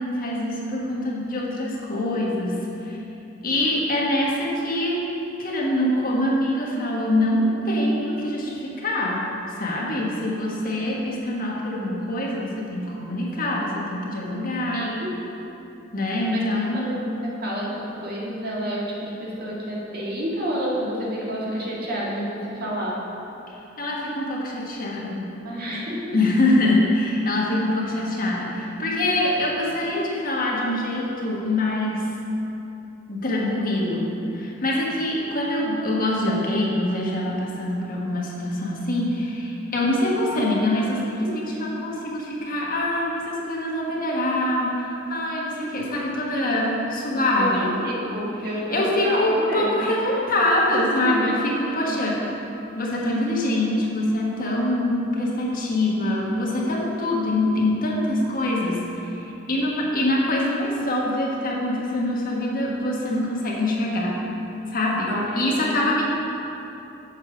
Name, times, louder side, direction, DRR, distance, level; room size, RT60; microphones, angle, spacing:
voice 1, 0.0-3.0 3.4-5.0 5.4-9.2 9.5-14.9 15.9-16.9 23.8-25.3 26.1-32.1 33.1-47.7 48.5-52.3 52.7-59.2 59.5-64.1 64.7-66.0, left 1 dB, 50° left, -3 dB, 1.3 m, -24 dB
voice 2, 14.7-15.1 16.3-16.4 16.7-17.1 17.4-23.0 25.4-26.2 47.4-49.9 51.0-51.4 65.1-65.8, equal, 55° right, -5 dB, 1.7 m, -29 dB
7.3 x 6.8 x 5.0 m, 2.9 s
head